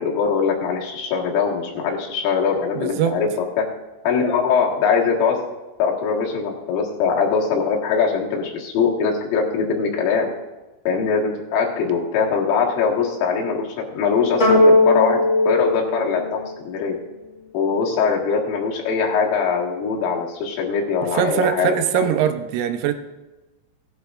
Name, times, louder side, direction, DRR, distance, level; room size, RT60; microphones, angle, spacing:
voice 1, 0.0-3.3 3.6-3.7 4.0-5.4 5.8-10.3 10.9-15.2 15.5-17.0 17.5-22.1, left 5 dB, 75° left, -2 dB, 4.2 m, -22 dB
voice 2, 2.8-3.2 21.1-22.9, right 9 dB, 90° right, 7 dB, 3.6 m, -21 dB
sound 1, 14.4-17.0, left 2 dB, 10° left, 4.1 m, -18 dB
17.5 x 11.5 x 2.5 m, 1.1 s
omnidirectional pair, 5.9 m